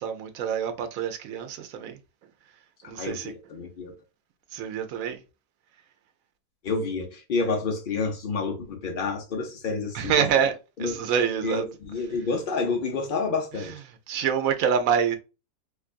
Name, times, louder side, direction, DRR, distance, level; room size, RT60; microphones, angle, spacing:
voice 1, 0.0-2.0 2.9-3.3 4.5-5.2 9.9-10.5 10.8-11.6 13.6-13.7 14.1-15.2, right 7 dB, 65° right, 1.0 m, -26 dB
voice 2, 3.0-3.9 6.6-10.5 10.8-11.0 11.4-13.8, left 4 dB, 40° left, 0.8 m, -29 dB
4.4 x 2.4 x 2.4 m
omnidirectional pair, 1.7 m